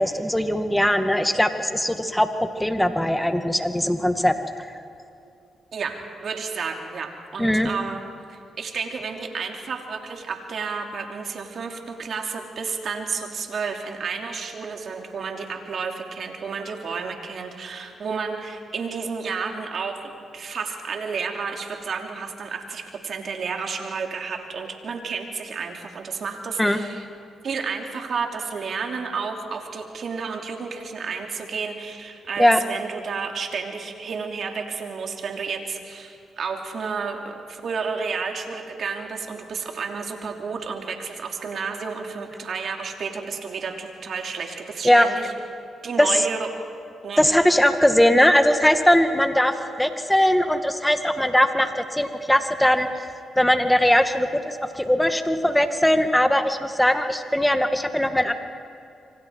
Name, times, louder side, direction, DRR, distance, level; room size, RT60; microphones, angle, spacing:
voice 1, 0.0-4.7 7.4-7.7 26.6-26.8 32.4-32.6 44.8-45.1 46.0-46.2 47.2-53.1 53.4-58.3, left 1 dB, 5° left, 7 dB, 2.0 m, -20 dB
voice 2, 5.7-8.0 8.3-27.0 27.4-45.3 45.8-46.5 47.0-47.3, right 5 dB, 60° right, 3 dB, 2.9 m, -31 dB
27.0 x 25.0 x 4.8 m, 2.5 s
supercardioid pair, 55°, 0 cm